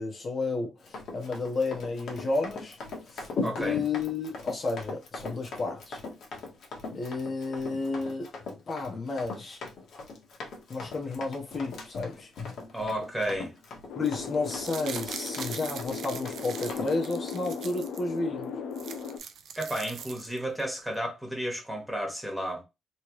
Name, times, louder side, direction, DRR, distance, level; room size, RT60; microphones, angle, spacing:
voice 1, 0.0-2.8 3.1-3.3 3.6-6.0 6.9-8.3 8.7-9.6 10.7-12.3 13.9-18.5, left 3 dB, 45° left, 1.2 m, -32 dB
Run, 0.8-16.9, left 3 dB, 65° left, 1.4 m, -40 dB
voice 2, 3.4-3.8 12.7-13.5 19.6-22.6, right 1 dB, ahead, 1.6 m, -32 dB
sound 1, 13.9-19.2, left 6 dB, 80° left, 0.7 m, -37 dB
sound 2, 14.3-18.0 18.4-18.5 18.7-20.6 20.9-21.0, right 7 dB, 70° right, 0.6 m, -42 dB
3.4 x 3.2 x 3.1 m
cardioid pair, 90°, 0 cm